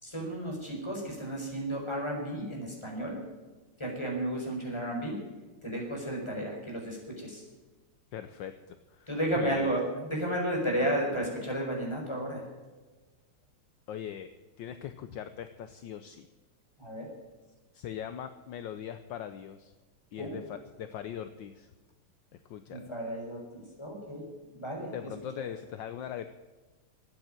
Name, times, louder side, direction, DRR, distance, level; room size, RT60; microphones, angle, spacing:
voice 1, 0.0-3.2 3.8-5.2 5.6-7.4 9.1-9.8 10.1-12.4 16.8-17.1 20.2-20.5 22.7-24.2 24.5-25.1 25.4-25.5, right 1 dB, 10° left, -1 dB, 4.8 m, -33 dB
voice 2, 8.1-8.5 8.9-9.1 9.4-9.7 13.9-14.3 14.6-16.3 17.7-19.7 20.1-21.7 22.3-22.9 24.9-26.3, left 9 dB, 70° left, 10 dB, 1.3 m, -40 dB
13.5 x 9.3 x 9.0 m, 1.3 s
omnidirectional pair, 2.3 m